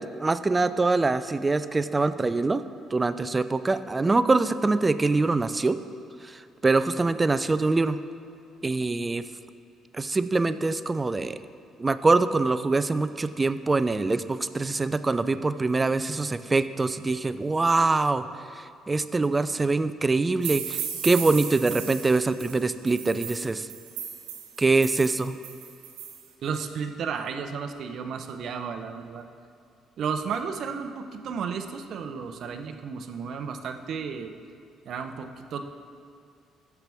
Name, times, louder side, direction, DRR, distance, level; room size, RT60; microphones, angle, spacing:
voice 1, 0.0-2.6 2.9-5.8 6.2-8.0 8.6-9.2 9.9-11.4 11.8-18.2 18.6-23.7 24.6-25.4, right 3 dB, 25° right, 13 dB, 0.4 m, -24 dB
sound 1, 20.4-26.2, right 8 dB, 85° right, 1.2 m, -36 dB
voice 2, 26.4-29.3 30.0-34.3 34.9-35.6, right 6 dB, 65° right, 7 dB, 0.7 m, -33 dB
15.0 x 5.9 x 3.5 m, 2.5 s
supercardioid pair, 60°, 0 cm